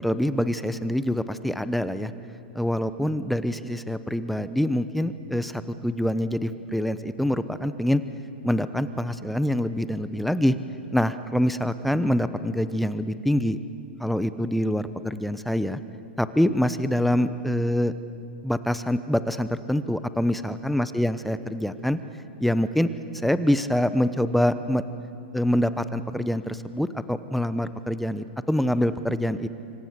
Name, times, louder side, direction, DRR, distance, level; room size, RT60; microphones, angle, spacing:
voice 1, 0.0-2.1 2.5-8.0 8.4-10.6 10.9-13.6 14.0-15.8 16.2-17.9 18.4-22.0 22.4-22.9 23.2-24.8 25.3-29.5, left 1 dB, ahead, 13 dB, 0.9 m, -25 dB
26.5 x 25.0 x 6.9 m, 2.6 s
hypercardioid pair, 110°, 6 cm